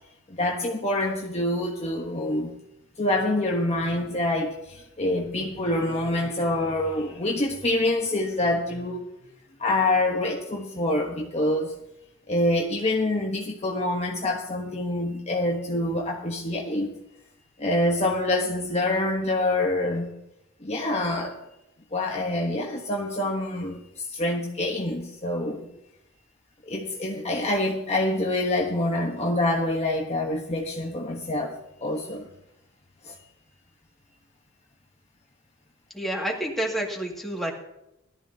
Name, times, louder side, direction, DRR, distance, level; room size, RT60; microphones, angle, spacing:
voice 1, 0.3-2.5 3.0-9.0 9.6-11.7 12.3-16.9 17.6-20.1 20.6-21.4 21.9-25.7 26.6-32.3 33.0-33.1, left 1 dB, 30° left, 1.2 m, -26 dB
voice 2, 35.9-37.5, right 1 dB, ahead, 2.2 m, -29 dB
18.0 x 13.0 x 2.8 m
head